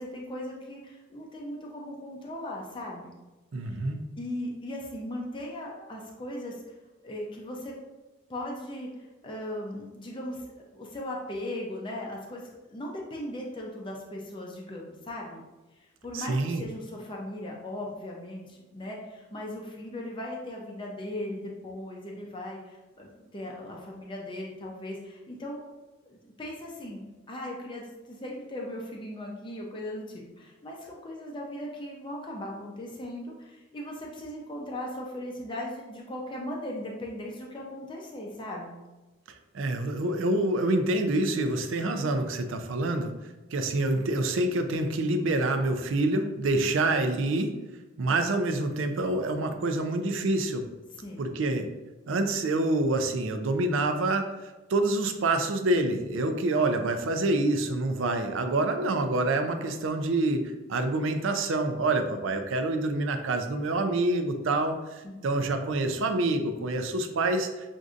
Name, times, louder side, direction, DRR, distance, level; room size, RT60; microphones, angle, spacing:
voice 1, 0.0-3.1 3.6-3.8 4.2-6.7 7.0-7.7 8.3-15.4 15.8-25.6 26.0-38.8 48.1-48.2 50.9-51.3 65.0-65.4, left 1 dB, 25° left, -2 dB, 0.5 m, -38 dB
voice 2, 3.5-4.0 16.1-16.6 39.5-43.1 43.5-47.5 48.0-50.7 51.2-51.7 52.1-54.3 54.7-67.5, right 2 dB, 70° right, 7 dB, 0.5 m, -27 dB
6.1 x 2.6 x 2.4 m, 1.1 s
head